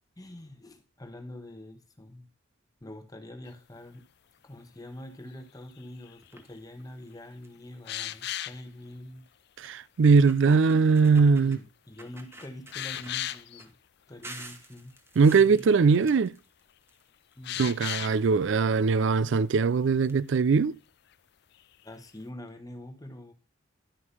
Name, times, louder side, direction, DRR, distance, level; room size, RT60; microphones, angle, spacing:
voice 1, 0.2-2.3 2.8-4.1 4.4-9.3 11.4-13.7 14.1-14.9 15.3-15.7 17.4-17.6 21.8-23.3, left 1 dB, 20° left, 1.1 m, -45 dB
sound 1, 3.5-3.6 5.8-6.4 7.9-8.6 11.5-11.6 12.1-12.2 12.7-13.7 15.3-15.4 15.5-16.0 17.4-18.2 21.6-21.8, left 13 dB, 55° left, 0.4 m, -35 dB
sound 2, 6.2-6.6 7.1-7.2 7.4-7.7 8.9-9.0 9.6-9.7 10.1-11.6 12.0-13.7 14.2-17.0 17.3-18.4 19.3-19.4 19.7-19.8 20.0-20.1, right 2 dB, 10° right, 1.1 m, -48 dB
voice 2, 9.6-11.6 15.2-16.3 17.6-20.8, right 5 dB, 65° right, 0.4 m, -21 dB
11.5 x 4.8 x 5.5 m
head